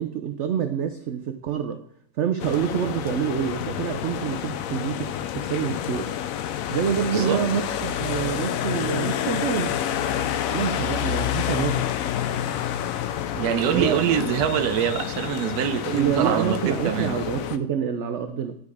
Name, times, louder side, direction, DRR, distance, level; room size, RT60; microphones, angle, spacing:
voice 1, 0.0-1.8 2.2-6.1 6.7-9.8 10.5-11.9 13.3-14.0 15.8-18.6, right 8 dB, 60° right, 0.7 m, -27 dB
sound 1, 2.4-17.6, left 10 dB, 70° left, 0.9 m, -28 dB
voice 2, 7.1-7.4 13.4-17.2, right 10 dB, 80° right, 1.2 m, -25 dB
10.5 x 5.1 x 4.8 m
omnidirectional pair, 1.7 m